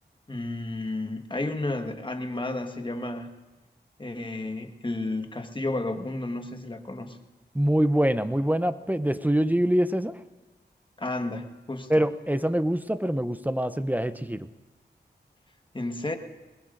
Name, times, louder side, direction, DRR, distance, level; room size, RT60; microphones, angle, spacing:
voice 1, 0.3-3.3 4.0-7.2 11.0-12.0 15.7-16.2, left 2 dB, 25° left, 5 dB, 1.5 m, -32 dB
voice 2, 7.5-10.2 11.9-14.5, equal, 10° right, 12 dB, 0.6 m, -24 dB
21.0 x 20.5 x 2.6 m, 1.1 s
cardioid pair, 50°, 18 cm